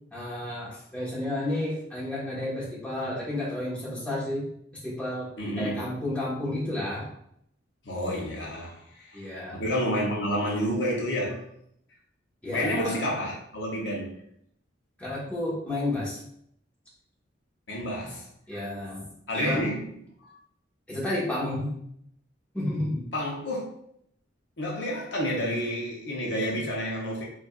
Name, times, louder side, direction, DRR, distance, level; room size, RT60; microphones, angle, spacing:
voice 1, 0.1-4.5 4.8-5.3 5.6-7.1 9.1-9.6 12.4-13.0 15.0-16.2 18.5-19.1 19.3-19.6 20.9-21.8 22.5-23.1, left 1 dB, 5° left, -8 dB, 1.2 m, -31 dB
voice 2, 5.4-5.9 7.8-11.5 12.5-14.2 17.7-18.3 19.3-19.8 20.2-20.4 23.1-23.7 24.6-27.2, equal, 65° left, -3 dB, 0.8 m, -30 dB
5.0 x 2.5 x 2.4 m, 0.71 s
head